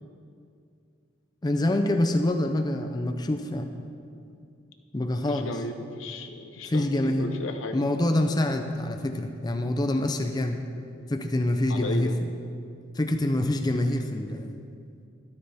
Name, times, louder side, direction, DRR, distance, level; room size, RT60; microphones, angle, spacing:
voice 1, 1.4-3.7 4.9-5.5 6.6-7.3 7.7-10.6 11.1-12.3 12.9-14.5, left 1 dB, 20° left, 5 dB, 0.5 m, -26 dB
voice 2, 5.3-7.8 11.7-12.2, left 2 dB, 85° left, 6 dB, 0.8 m, -35 dB
12.5 x 11.5 x 3.5 m, 2.4 s
head